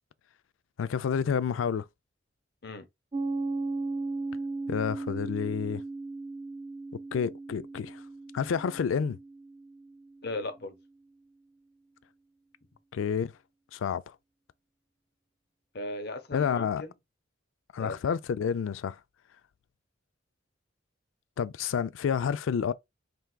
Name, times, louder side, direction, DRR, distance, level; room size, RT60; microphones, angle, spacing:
voice 1, 0.8-1.9 4.7-5.8 7.1-8.0 8.3-9.2 12.9-13.3 13.7-14.2 16.3-16.8 17.7-19.0 21.4-22.7, left 7 dB, 90° left, 0.4 m, -29 dB
Piano, 3.1-10.3, right 3 dB, 30° right, 0.6 m, -36 dB
voice 2, 10.2-10.7 15.7-16.9 17.8-18.0, left 2 dB, 55° left, 0.8 m, -37 dB
4.6 x 3.4 x 2.2 m
head